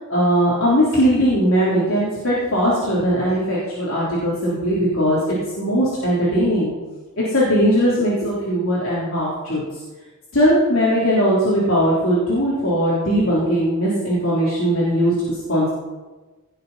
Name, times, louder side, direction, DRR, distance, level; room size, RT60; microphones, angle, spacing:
voice 1, 0.1-6.7 7.2-9.6 10.3-15.7, equal, 65° left, -7 dB, 3.6 m, -19 dB
18.0 x 6.9 x 5.7 m, 1.2 s
head